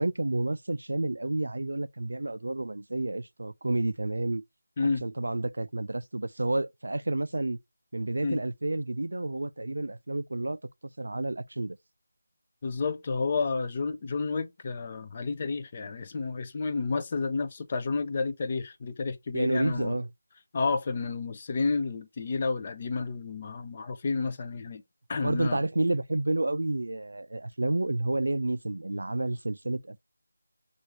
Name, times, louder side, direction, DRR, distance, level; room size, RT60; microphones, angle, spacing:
voice 1, 0.0-4.4 5.0-7.6 7.9-10.6 11.0-11.8 19.3-20.1 25.2-30.0, right 2 dB, 80° right, 0.3 m, -30 dB
voice 2, 12.6-20.0 20.5-24.8 25.1-25.6, left 4 dB, 25° left, 0.4 m, -30 dB
6.4 x 2.5 x 3.0 m
figure-of-eight pair, 175°, 0 cm